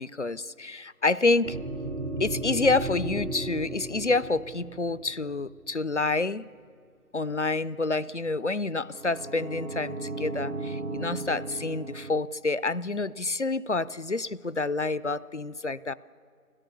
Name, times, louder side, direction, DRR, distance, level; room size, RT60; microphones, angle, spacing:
voice 1, 0.0-1.6 2.2-6.4 7.1-15.9, left 3 dB, 55° left, 18 dB, 0.5 m, -28 dB
sound 1, 1.4-5.8 8.9-12.2, right 2 dB, 60° right, 1.0 m, -35 dB
25.5 x 17.0 x 6.9 m, 2.2 s
figure-of-eight pair, 170°, 44 cm